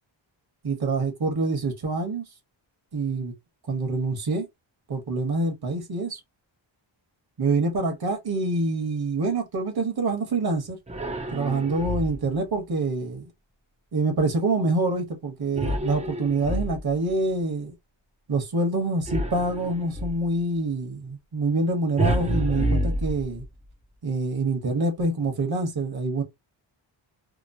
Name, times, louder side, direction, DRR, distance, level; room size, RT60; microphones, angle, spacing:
voice 1, 0.6-2.2 2.9-3.3 3.7-4.5 4.9-6.2 7.4-10.8 11.3-13.3 13.9-17.7 18.3-23.4 24.0-26.2, right 2 dB, 50° right, 1.1 m, -26 dB
sound 1, 10.9-12.4 15.5-17.1 19.0-20.3 22.0-23.7, right 1 dB, 15° right, 0.4 m, -28 dB
2.9 x 2.0 x 2.5 m
wide cardioid pair, 110°, 47 cm